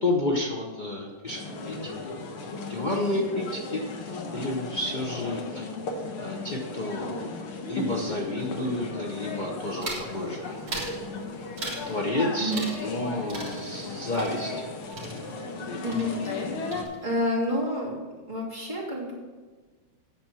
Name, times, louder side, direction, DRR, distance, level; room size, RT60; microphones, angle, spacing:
voice 1, 0.0-2.2 2.5-5.7 6.2-7.3 7.7-10.7 11.9-14.7 15.7-16.0, left 2 dB, 60° left, 0 dB, 0.4 m, -31 dB
sound 1, 1.3-16.8, left 3 dB, 80° left, 2.1 m, -36 dB
sound 2, 9.8-10.1 10.7-11.0 11.6-11.9 12.5-13.0 13.3-15.6 15.9-16.4 16.7-17.3, right 2 dB, 40° right, 2.2 m, -38 dB
voice 2, 15.8-16.5 17.0-17.9 18.3-19.1, left 1 dB, 15° right, -6 dB, 2.7 m, -29 dB
9.4 x 7.2 x 6.2 m, 1.4 s
omnidirectional pair, 2.3 m